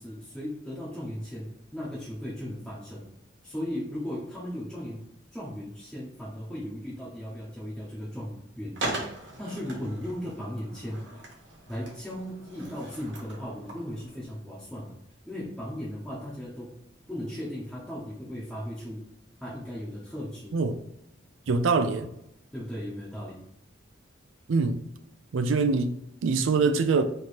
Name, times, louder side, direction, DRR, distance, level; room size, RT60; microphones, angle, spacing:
voice 1, 0.0-3.1 3.4-5.1 5.3-9.0 9.4-11.1 11.7-15.0 15.3-16.8 17.1-19.0 19.4-20.6 22.5-23.4, equal, ahead, 0.7 m, -37 dB
Skateboard, 8.8-14.3, right 2 dB, 70° right, 1.3 m, -39 dB
voice 2, 21.5-22.1 24.5-24.8 25.3-27.0, right 4 dB, 90° right, 0.4 m, -24 dB
3.2 x 2.9 x 4.2 m
head